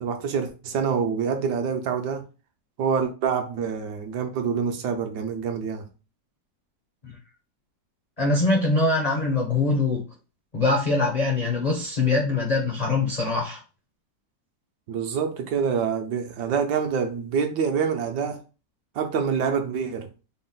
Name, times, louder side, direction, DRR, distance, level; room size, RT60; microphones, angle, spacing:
voice 1, 0.0-2.3 2.8-5.8 14.9-18.4 18.9-20.1, right 6 dB, 75° right, 1.2 m, -26 dB
voice 2, 8.2-10.0 10.5-13.6, left 3 dB, 65° left, 0.3 m, -23 dB
4.2 x 2.1 x 3.8 m
omnidirectional pair, 2.0 m